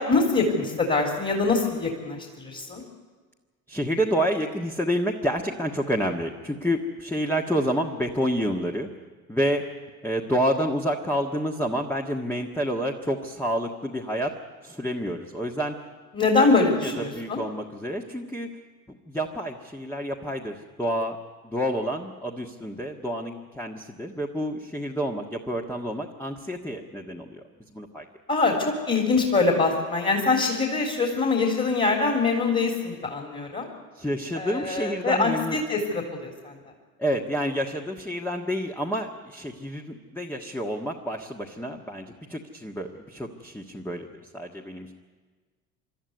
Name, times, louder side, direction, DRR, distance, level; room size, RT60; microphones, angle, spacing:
voice 1, 0.0-2.8 16.1-17.4 28.3-33.7 34.4-36.6, left 3 dB, 20° left, 1 dB, 3.7 m, -24 dB
voice 2, 3.7-8.9 9.3-9.6 10.0-14.3 14.6-15.7 16.8-18.5 18.9-21.2 21.4-27.4 27.7-28.1 34.0-35.6 37.0-44.1 44.3-44.9, equal, 5° left, 1 dB, 1.6 m, -29 dB
26.5 x 13.0 x 9.6 m, 1.4 s
figure-of-eight pair, 60°, 44 cm